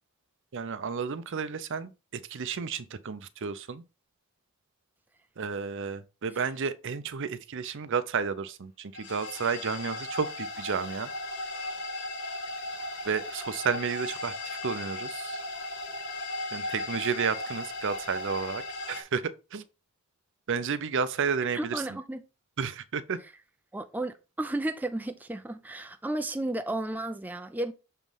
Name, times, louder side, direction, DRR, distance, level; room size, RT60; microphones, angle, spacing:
voice 1, 0.5-3.8 5.4-11.1 13.1-15.4 16.5-18.6 18.9-19.2 19.5-19.6 20.5-21.8 22.6-23.2, right 6 dB, 60° right, 0.6 m, -32 dB
sound 1, 8.9-19.0, left 2 dB, 55° left, 1.6 m, -36 dB
voice 2, 21.5-22.2 23.7-27.7, right 1 dB, 10° right, 0.4 m, -33 dB
6.8 x 3.1 x 5.3 m
head